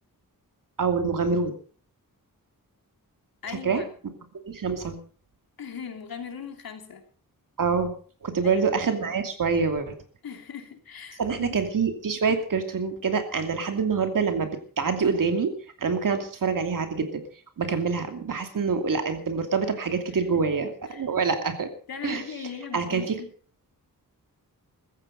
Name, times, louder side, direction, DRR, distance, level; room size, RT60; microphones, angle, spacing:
voice 1, 0.8-1.5 3.6-3.8 4.5-5.0 7.6-7.9 8.2-10.0 11.2-14.5 14.8-17.2 17.6-21.7 22.0-22.2 22.7-23.1, right 5 dB, 65° right, 7 dB, 2.7 m, -26 dB
voice 2, 3.4-3.9 5.6-7.0 8.4-8.7 10.2-11.6 20.1-20.4 20.9-21.1 21.9-23.3, left 7 dB, 85° left, 6 dB, 2.8 m, -39 dB
15.0 x 14.5 x 5.3 m, 0.42 s
wide cardioid pair, 135°, 35 cm